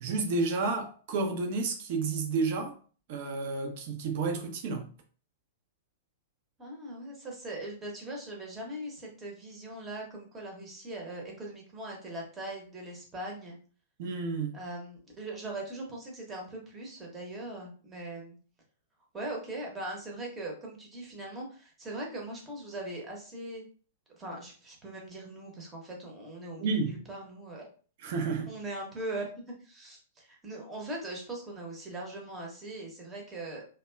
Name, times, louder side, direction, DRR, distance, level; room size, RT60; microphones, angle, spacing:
voice 1, 0.0-2.8 3.1-4.9 14.0-14.6 26.6-27.0 28.0-28.5, right 4 dB, 45° right, 0.6 m, -31 dB
voice 2, 6.6-13.6 14.5-18.4 19.1-23.6 24.1-27.7 28.3-29.3 29.6-33.6, right 1 dB, 15° right, 0.8 m, -40 dB
2.7 x 2.2 x 2.2 m
figure-of-eight pair, 105°, 0 cm